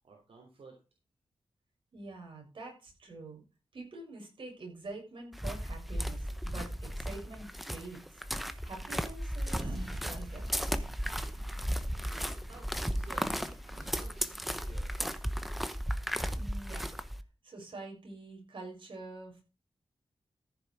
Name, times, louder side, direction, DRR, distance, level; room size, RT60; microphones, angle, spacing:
voice 1, 0.0-0.8 12.2-15.0, right 4 dB, 75° right, 1 dB, 3.2 m, -55 dB
voice 2, 1.9-3.4 3.7-8.2 8.6-10.5 16.3-16.9 17.4-19.4, right 2 dB, 55° right, 0 dB, 6.5 m, -46 dB
sound 1, 5.3-17.2, equal, ahead, 0.9 m, -35 dB
Sliding door, 9.4-14.6, right 2 dB, 40° right, 2.1 m, -49 dB
14.5 x 6.8 x 4.7 m, 0.30 s
wide cardioid pair, 145°, 10 cm